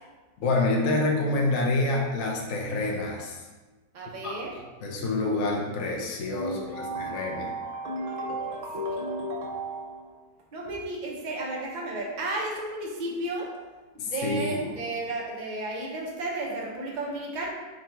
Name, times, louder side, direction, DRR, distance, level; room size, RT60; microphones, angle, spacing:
voice 1, 0.4-3.4 4.2-4.4 4.8-7.5 14.0-14.7, left 2 dB, 65° left, -1 dB, 1.0 m, -27 dB
voice 2, 3.9-4.6 6.3-10.1 10.5-13.5 14.0-17.5, right 1 dB, 45° right, -2 dB, 0.6 m, -33 dB
3.7 x 2.4 x 4.2 m, 1.2 s
omnidirectional pair, 1.5 m